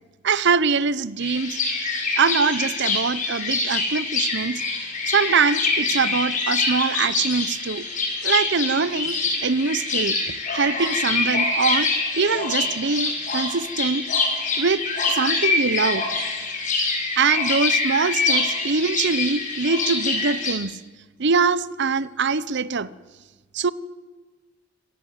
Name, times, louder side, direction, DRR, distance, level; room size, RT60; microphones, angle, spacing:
voice 1, 0.2-1.6 2.2-4.6 5.1-7.8 8.2-9.2 9.4-10.2 10.5-11.9 12.2-14.0 14.6-16.1 17.2-20.8 21.2-22.9 23.5-23.7, right 5 dB, 60° right, 0.8 m, -23 dB
sound 1, 1.2-20.5, left 3 dB, 40° left, 6.0 m, -25 dB
26.0 x 18.5 x 8.1 m
head